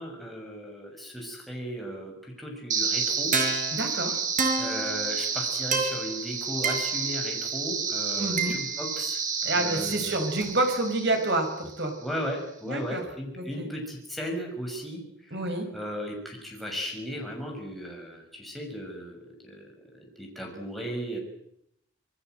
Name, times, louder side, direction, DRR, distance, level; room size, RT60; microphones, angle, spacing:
voice 1, 0.0-3.3 4.6-9.2 9.6-10.3 12.0-15.0 15.3-15.4 15.7-19.2 19.4-19.6 20.0-21.2, equal, ahead, 0 dB, 6.3 m, -36 dB
sound 1, 2.7-11.7, right 5 dB, 40° right, 5.4 m, -29 dB
voice 2, 3.7-4.2 8.2-8.6 9.4-11.9 12.7-13.0 13.4-13.7 15.3-15.7, right 2 dB, 60° right, 5 dB, 5.3 m, -28 dB
26.5 x 20.0 x 7.9 m, 0.76 s
head